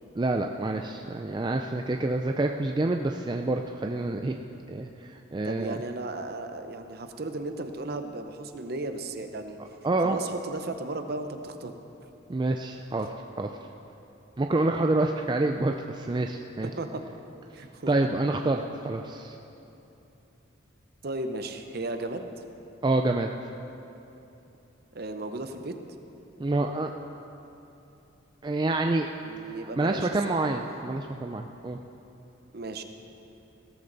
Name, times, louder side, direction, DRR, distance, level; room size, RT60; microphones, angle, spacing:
voice 1, 0.2-4.4 4.7-5.8 9.8-10.2 12.3-13.5 14.4-16.7 17.9-19.4 22.8-23.3 26.4-26.9 28.4-29.1 29.4-31.8, right 2 dB, 20° right, 4 dB, 0.3 m, -27 dB
voice 2, 5.4-9.6 10.0-11.7 16.6-17.0 17.5-17.9 21.0-22.3 24.9-25.7 29.2-30.5 32.5-32.8, right 2 dB, 50° right, 7 dB, 0.8 m, -35 dB
16.5 x 13.0 x 4.0 m, 2.9 s
head